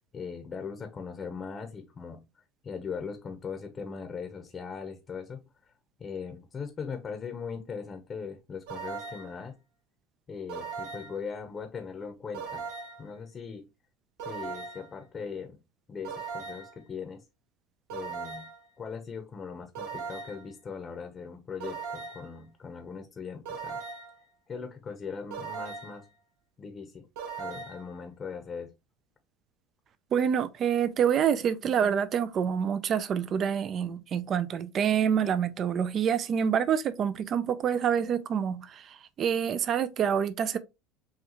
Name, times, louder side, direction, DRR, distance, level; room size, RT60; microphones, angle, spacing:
voice 1, 0.1-5.7 6.0-9.5 10.3-12.7 13.0-13.6 14.2-15.6 15.9-17.2 17.9-18.5 18.8-23.8 24.5-26.1 26.6-27.1 27.4-28.7, left 5 dB, 30° left, 0.8 m, -40 dB
sound 1, 8.7-9.4 10.5-11.2 12.3-13.1 14.2-14.9 16.0-16.8 17.9-18.6 19.7-20.5 21.6-22.3 23.5-24.2 25.3-26.0 27.2-27.9, right 5 dB, 80° right, 2.1 m, -39 dB
voice 2, 30.1-40.6, right 8 dB, 40° right, 0.4 m, -27 dB
6.3 x 2.4 x 2.9 m
supercardioid pair, 115°, 0 cm